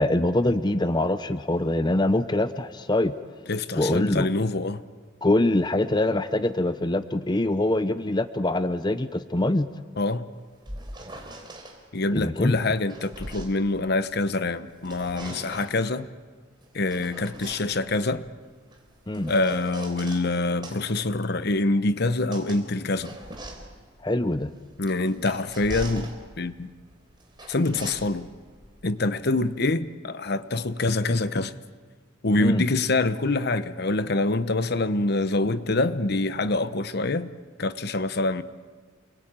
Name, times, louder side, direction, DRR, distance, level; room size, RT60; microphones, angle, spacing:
voice 1, 0.0-3.1 3.7-4.3 5.2-9.7 12.1-12.6 19.1-19.3 24.0-24.5 32.4-32.7, left 1 dB, 20° left, 0.7 m, -24 dB
voice 2, 3.5-4.8 10.0-10.3 11.9-16.1 16.7-18.2 19.3-23.1 24.8-26.7 27.5-28.3 28.8-31.5 32.2-37.3 37.6-38.4, left 2 dB, 55° left, 0.9 m, -25 dB
sound 1, 10.4-11.8 12.6-14.4 14.7-15.8 16.6-20.3 20.6-29.7, right 1 dB, 25° right, 4.0 m, -42 dB
28.5 x 21.5 x 8.9 m
head